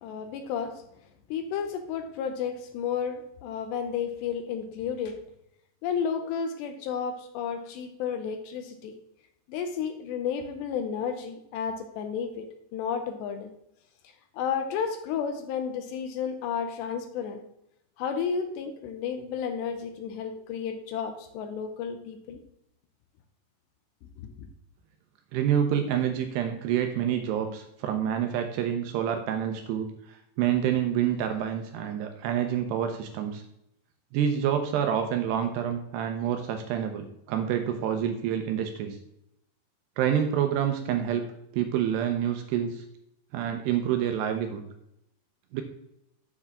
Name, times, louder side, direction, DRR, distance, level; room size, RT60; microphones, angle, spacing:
voice 1, 0.0-0.8 1.3-5.2 5.8-8.9 9.5-13.5 14.3-17.4 18.0-22.4 24.2-24.3, left 7 dB, 80° left, 7 dB, 2.7 m, -32 dB
voice 2, 25.3-33.4 34.1-39.0 40.0-41.3 41.5-42.8 43.3-44.6 45.5-45.6, right 9 dB, 80° right, 6 dB, 2.5 m, -27 dB
8.0 x 4.5 x 7.1 m, 0.79 s
omnidirectional pair, 5.3 m